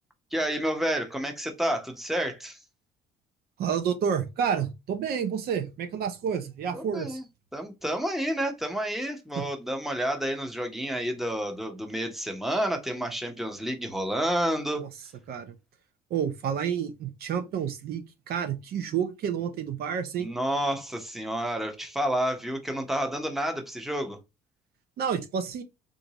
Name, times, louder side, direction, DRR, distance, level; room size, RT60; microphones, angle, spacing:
voice 1, 0.3-2.6 6.7-7.2 7.5-14.8 20.2-24.2, equal, ahead, 0.9 m, -30 dB
voice 2, 3.6-7.2 9.4-9.5 14.8-14.9 15.3-15.5 16.1-20.3 25.0-25.6, right 7 dB, 65° right, 0.8 m, -29 dB
3.8 x 2.6 x 2.9 m
cardioid pair, 110°, 17 cm